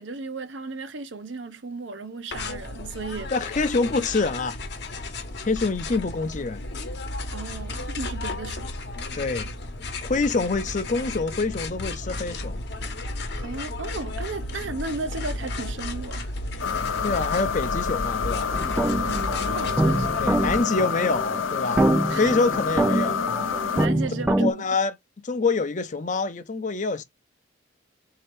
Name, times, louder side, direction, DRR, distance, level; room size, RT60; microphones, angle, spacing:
voice 1, 0.0-3.3 7.3-8.7 13.4-16.3 19.0-20.2 22.1-22.4 23.7-24.6, right 3 dB, 70° right, 0.7 m, -34 dB
sound 1, 2.3-20.6, left 2 dB, 60° left, 1.0 m, -33 dB
voice 2, 3.3-4.6 5.5-6.6 9.1-9.5 10.0-12.6 17.0-18.5 20.2-21.9 22.1-23.3 24.4-24.9 25.2-27.0, left 3 dB, 40° left, 0.6 m, -26 dB
sound 2, 16.6-23.9, left 7 dB, 90° left, 0.5 m, -28 dB
sound 3, 18.5-24.5, right 1 dB, 10° right, 0.4 m, -25 dB
4.1 x 2.8 x 3.1 m
head